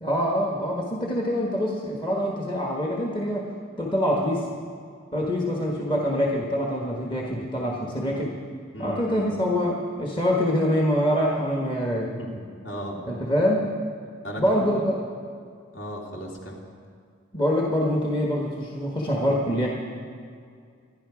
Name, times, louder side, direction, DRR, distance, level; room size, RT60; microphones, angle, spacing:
voice 1, 0.0-3.5 3.8-4.5 5.1-8.3 8.8-12.1 13.1-13.7 14.4-15.0 17.3-19.7, equal, 25° left, -2 dB, 1.4 m, -25 dB
voice 2, 8.7-9.4 12.2-13.0 14.2-14.8 15.7-16.6, equal, 55° left, -2 dB, 2.9 m, -36 dB
25.0 x 10.5 x 5.0 m, 2.2 s
head